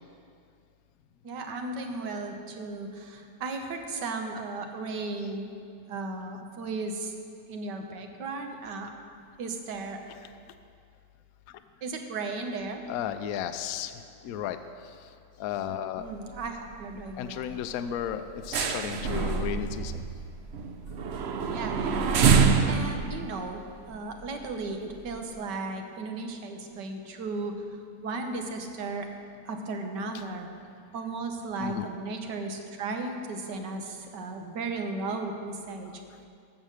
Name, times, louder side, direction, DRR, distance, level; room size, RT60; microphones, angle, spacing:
voice 1, 1.2-5.5 5.9-7.1 7.5-8.9 9.4-10.0 11.8-12.8 16.0-17.5 21.5-29.1 29.5-30.5 30.9-35.9, right 3 dB, 85° right, 4 dB, 1.7 m, -35 dB
voice 2, 12.9-13.9 14.2-14.6 15.4-16.0 17.2-20.0 31.6-31.9, left 9 dB, 70° left, 9 dB, 0.9 m, -33 dB
sound 1, 16.0-16.5 16.7-16.9 17.3-17.5 17.9-24.6 25.1-25.2, right 5 dB, 60° right, 0.7 m, -26 dB
13.0 x 7.2 x 6.5 m, 2.4 s
omnidirectional pair, 1.8 m